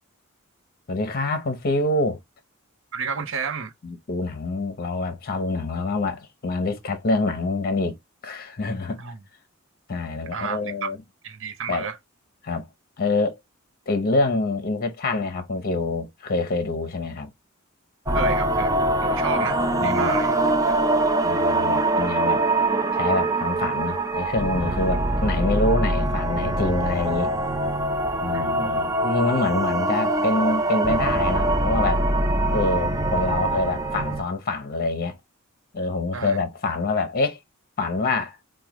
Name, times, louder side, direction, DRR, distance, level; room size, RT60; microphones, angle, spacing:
voice 1, 0.9-2.2 3.8-8.0 8.2-9.0 9.9-11.0 11.7-11.9 12.4-12.7 13.0-13.4 13.9-17.3 19.8-20.1 21.2-22.4 23.0-27.3 28.2-32.0 32.5-35.2 35.7-37.4 37.8-38.4, left 2 dB, 45° left, 0.7 m, -26 dB
voice 2, 2.9-3.7 9.0-9.2 10.3-10.9 11.2-12.0 18.1-20.4 28.3-28.9 36.1-36.4, right 5 dB, 65° right, 0.6 m, -31 dB
sound 1, 18.1-34.2, right 2 dB, 15° right, 0.5 m, -23 dB
4.6 x 2.2 x 2.9 m
head